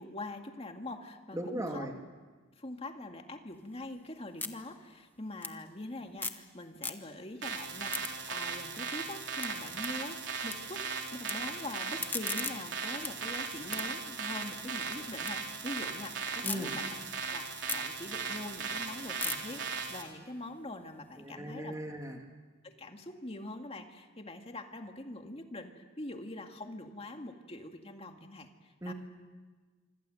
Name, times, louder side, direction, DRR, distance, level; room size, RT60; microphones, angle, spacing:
voice 1, 0.0-1.9 2.6-10.9 11.1-21.8 22.1-22.2 22.6-28.9, left 1 dB, 30° left, 4 dB, 2.1 m, -44 dB
voice 2, 1.3-1.9 16.4-16.8 21.2-22.2 28.8-28.9, right 1 dB, 15° right, 2 dB, 2.4 m, -37 dB
sound 1, 3.5-6.5 6.7-7.4 7.7-10.6 10.8-11.3 11.7-15.3 15.7-16.6 17.0-21.2, left 3 dB, 10° left, 1.2 m, -42 dB
sound 2, 7.4-20.0, right 5 dB, 65° right, 3.8 m, -38 dB
26.5 x 25.5 x 7.8 m, 1.4 s
head